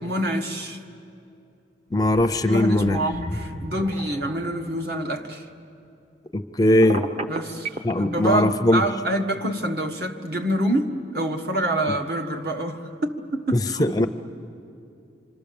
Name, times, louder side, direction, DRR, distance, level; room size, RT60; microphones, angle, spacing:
voice 1, 0.0-0.8 2.4-5.5 7.3-14.1, right 1 dB, 55° right, 3 dB, 1.6 m, -26 dB
voice 2, 1.9-3.0 6.3-7.0 7.8-8.8 13.5-14.1, left 1 dB, 20° left, 9 dB, 0.5 m, -20 dB
sound 1, 1.9-4.5 5.2-5.3, left 1 dB, 85° right, 7.3 m, -38 dB
Telephone, 6.8-7.9, right 2 dB, 35° right, 0.9 m, -29 dB
27.0 x 25.5 x 7.0 m, 2.6 s
head